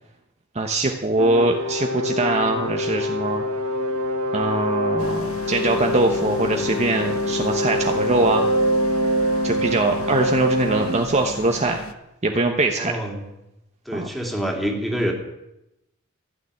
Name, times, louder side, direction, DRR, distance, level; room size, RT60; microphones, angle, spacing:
voice 1, 0.5-3.5 4.3-8.5 9.4-11.8 12.2-12.9 13.9-14.1, right 2 dB, 30° right, 3 dB, 1.0 m, -22 dB
sound 1, 1.2-11.1, equal, 85° right, 1.6 m, -25 dB
sound 2, 5.0-11.9, left 2 dB, 70° left, 0.9 m, -34 dB
voice 2, 12.8-13.2 13.9-15.1, equal, ahead, 1 dB, 2.6 m, -26 dB
15.0 x 6.9 x 9.8 m, 0.90 s
head